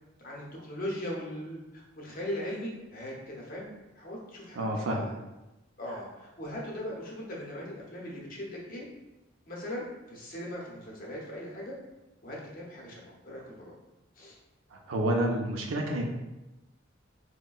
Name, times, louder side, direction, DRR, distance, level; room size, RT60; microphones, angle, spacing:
voice 1, 0.2-5.1 5.8-8.9 9.5-11.7 12.2-13.8 14.2-14.4, left 1 dB, 45° left, -4 dB, 0.7 m, -39 dB
voice 2, 4.6-5.0 5.9-6.0 14.7-16.1, right 1 dB, 85° right, 1 dB, 0.5 m, -29 dB
3.8 x 2.1 x 2.3 m, 1.0 s
head